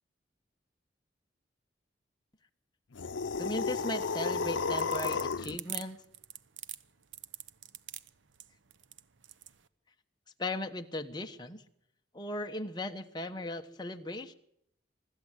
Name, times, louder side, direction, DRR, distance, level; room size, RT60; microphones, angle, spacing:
sound 1, 2.9-5.6, left 5 dB, 80° left, 0.7 m, -32 dB
voice 1, 3.4-6.0 10.4-11.6 12.1-14.3, left 1 dB, 20° left, 5 dB, 1.1 m, -37 dB
sound 2, 4.4-9.6, right 12 dB, 85° right, 0.9 m, -43 dB
24.5 x 13.0 x 8.1 m, 0.75 s
head